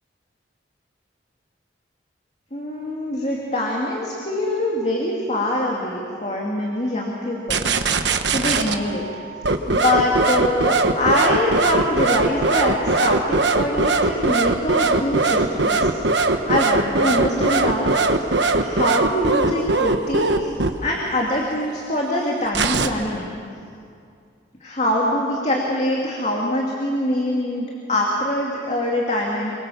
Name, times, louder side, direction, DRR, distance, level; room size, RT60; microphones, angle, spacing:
voice 1, 2.5-7.6 8.2-9.0 9.7-15.9 16.3-18.3 18.6-20.5 20.8-23.3 24.6-29.5, left 1 dB, 35° left, -2 dB, 2.6 m, -24 dB
sound 1, 7.5-8.8 9.4-20.7 22.5-22.9, right 3 dB, 75° right, 1.3 m, -19 dB
25.5 x 23.5 x 7.2 m, 2.4 s
head